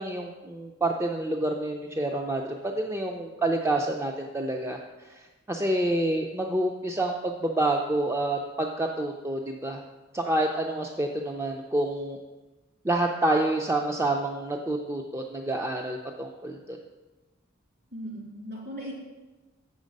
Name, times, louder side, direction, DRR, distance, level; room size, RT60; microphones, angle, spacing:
voice 1, 0.0-9.8 10.1-12.2 12.8-16.8, right 1 dB, 15° right, 2 dB, 0.4 m, -28 dB
voice 2, 17.9-18.9, equal, 50° right, -3 dB, 3.0 m, -38 dB
7.7 x 6.3 x 5.2 m, 1.2 s
head